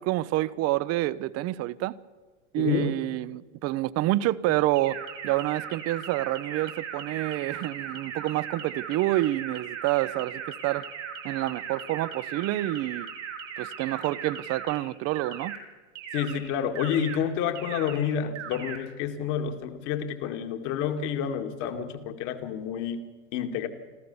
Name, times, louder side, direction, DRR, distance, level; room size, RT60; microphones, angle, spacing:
voice 1, 0.0-2.0 2.5-10.9 11.2-13.1 13.6-15.5, right 16 dB, 45° right, 0.7 m, -28 dB
voice 2, 2.6-3.0 16.1-23.0 23.3-23.7, left 8 dB, 55° left, 2.2 m, -29 dB
sound 1, 4.8-14.8 15.2-15.6 16.0-16.4 16.8-17.2 17.6-18.0 18.4-18.8, right 8 dB, 80° right, 5.1 m, -38 dB
26.5 x 14.5 x 7.1 m
hypercardioid pair, 115°, 36 cm